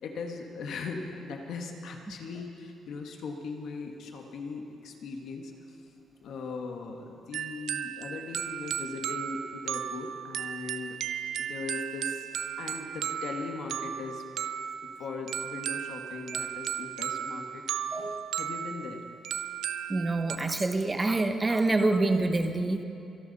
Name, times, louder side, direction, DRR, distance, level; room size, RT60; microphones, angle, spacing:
voice 1, 0.0-5.8 6.2-11.0 11.4-12.3 12.6-14.2 15.0-17.6 17.9-19.0, left 4 dB, 65° left, 3 dB, 1.5 m, -39 dB
sound 1, 7.3-20.4, right 9 dB, 70° right, 0.5 m, -35 dB
voice 2, 17.9-18.3 19.9-22.8, right 2 dB, 15° right, 7 dB, 0.8 m, -27 dB
24.5 x 12.0 x 4.1 m, 2.6 s
cardioid pair, 150°, 0 cm